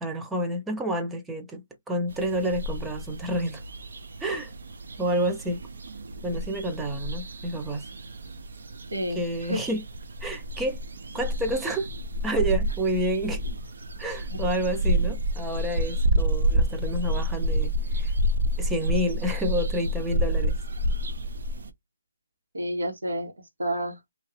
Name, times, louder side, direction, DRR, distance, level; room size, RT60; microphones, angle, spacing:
voice 1, 0.0-3.6 4.2-4.5 5.0-5.6 6.2-7.8 9.1-9.8 10.2-10.8 11.1-11.9 12.2-13.4 14.0-18.1 18.6-20.6, right 1 dB, 5° right, 0.5 m, -29 dB
sound 1, 2.1-21.7, equal, 60° right, 0.6 m, -29 dB
voice 2, 8.9-9.6 14.3-14.5 22.5-23.3 23.6-24.0, right 1 dB, 85° right, 1.6 m, -30 dB
2.8 x 2.6 x 2.9 m
hypercardioid pair, 160°, 0 cm